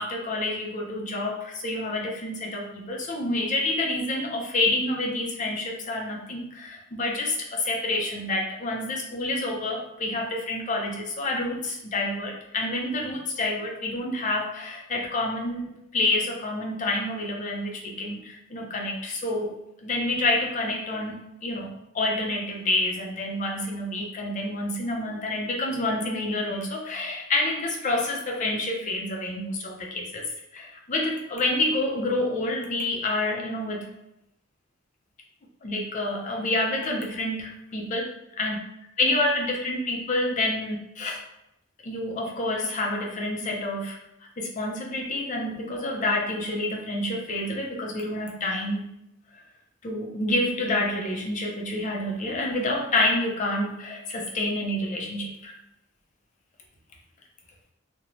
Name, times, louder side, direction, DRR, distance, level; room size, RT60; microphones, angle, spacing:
voice 1, 0.0-30.2 30.5-33.9 35.6-38.6 39.0-41.2 41.8-44.0 44.4-48.9 49.3-49.4 49.8-55.5, left 2 dB, 40° left, -1 dB, 0.5 m, -28 dB
2.6 x 2.1 x 2.9 m, 0.83 s
head